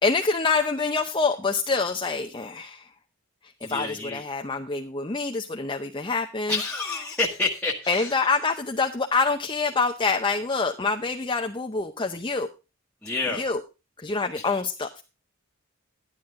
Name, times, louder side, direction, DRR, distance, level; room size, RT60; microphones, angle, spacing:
voice 1, 0.0-2.9 3.7-6.6 7.9-12.5 13.4-13.6 14.0-15.0, left 4 dB, 25° left, 3 dB, 0.7 m, -26 dB
voice 2, 3.6-4.2 6.5-8.1 13.0-13.5 14.4-14.5, left 3 dB, 5° left, -4 dB, 1.3 m, -29 dB
12.0 x 10.5 x 3.7 m, 0.30 s
head